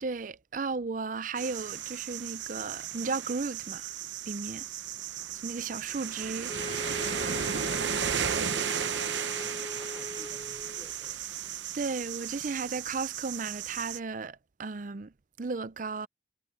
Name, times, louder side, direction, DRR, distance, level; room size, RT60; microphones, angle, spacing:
voice 1, 0.0-3.9 4.3-4.7 5.4-6.6 11.7-15.1 15.4-16.1, right 4 dB, 45° right, 0.5 m, -35 dB
sound 1, 1.4-14.0, right 8 dB, 80° right, 0.9 m, -35 dB
sound 2, 6.5-10.9, left 2 dB, 25° left, 1.3 m, -40 dB
voice 2, 6.8-11.3, equal, 5° left, 3.3 m, -53 dB
head